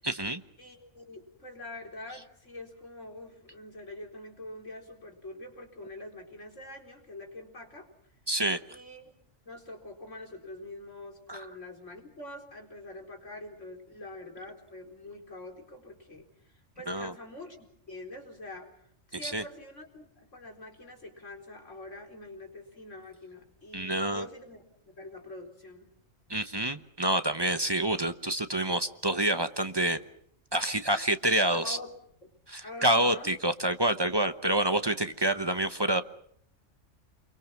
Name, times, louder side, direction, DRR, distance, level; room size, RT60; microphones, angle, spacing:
voice 1, 0.0-0.4 8.3-8.6 11.3-11.5 16.9-17.1 19.2-19.4 23.7-24.2 26.3-30.0 30.5-31.8 32.5-36.0, right 1 dB, 20° right, 10 dB, 0.9 m, -27 dB
voice 2, 0.6-7.9 8.7-9.1 9.5-18.7 19.1-25.9 31.5-32.0 32.2-32.3 32.6-33.3, left 2 dB, 70° left, 2 dB, 4.6 m, -45 dB
28.5 x 23.0 x 6.0 m, 0.68 s
omnidirectional pair, 1.3 m